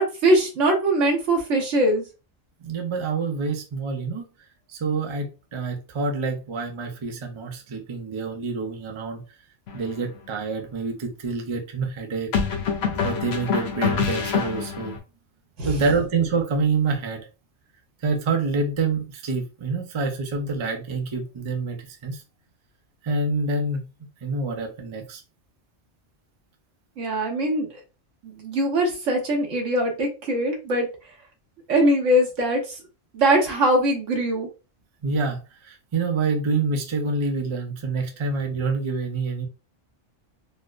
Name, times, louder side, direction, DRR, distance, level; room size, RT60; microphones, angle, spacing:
voice 1, 0.0-2.0 15.6-15.8 27.0-27.8 28.2-30.9 31.7-32.8 33.1-34.5, right 1 dB, 80° right, 1.4 m, -22 dB
voice 2, 2.6-4.3 4.7-9.2 9.7-12.3 13.0-14.9 15.6-17.2 18.0-22.2 23.0-25.2 35.0-39.5, right 4 dB, 35° right, 0.4 m, -27 dB
sound 1, 9.7-9.9 12.3-15.0, left 6 dB, 60° left, 0.9 m, -25 dB
4.2 x 2.1 x 2.4 m
omnidirectional pair, 1.3 m